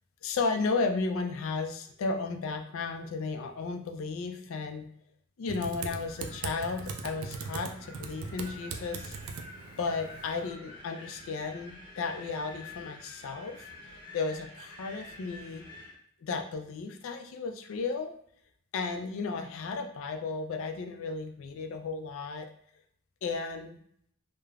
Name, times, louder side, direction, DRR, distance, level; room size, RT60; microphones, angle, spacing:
voice 1, 0.2-4.9 5.4-9.2 9.8-15.7 16.2-18.1 18.7-22.5 23.2-23.8, left 4 dB, 65° left, 5 dB, 0.4 m, -34 dB
Typing, 5.5-10.5, right 5 dB, 70° right, 0.3 m, -40 dB
Wind, 6.0-16.0, left 2 dB, 20° left, 0.8 m, -49 dB
3.2 x 2.0 x 2.3 m, 0.66 s
head